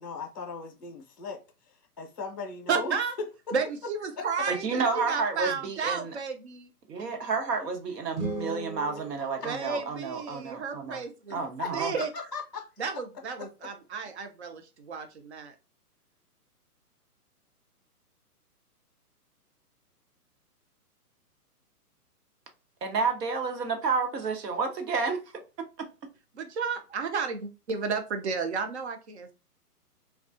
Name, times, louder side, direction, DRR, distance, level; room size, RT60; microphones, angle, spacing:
voice 1, 0.0-1.4 2.0-2.9 4.2-4.3 11.3-12.6, left 4 dB, 30° left, 0.5 m, -37 dB
voice 2, 2.7-3.1 3.5-6.7 9.4-11.4 11.7-12.1 12.8-15.5 26.3-29.3, right 5 dB, 45° right, 0.5 m, -32 dB
voice 3, 4.5-6.1 6.9-11.0 11.3-11.9 22.8-25.2, right 4 dB, 90° right, 1.1 m, -30 dB
sound 1, 8.1-10.3, right 2 dB, 65° right, 1.2 m, -38 dB
3.4 x 2.3 x 2.5 m
hypercardioid pair, 175°, 47 cm